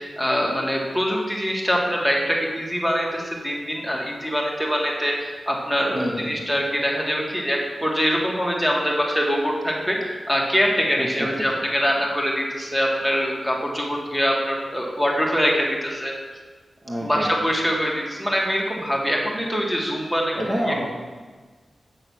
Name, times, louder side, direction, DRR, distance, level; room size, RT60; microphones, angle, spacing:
voice 1, 0.0-16.1 17.0-20.4 20.7-20.9, equal, 5° right, -2 dB, 1.8 m, -24 dB
voice 2, 5.9-6.4 11.0-11.3 16.8-17.3 20.3-20.9, equal, 35° right, -3 dB, 1.5 m, -27 dB
8.2 x 6.6 x 6.3 m, 1.4 s
wide cardioid pair, 95°, 0 cm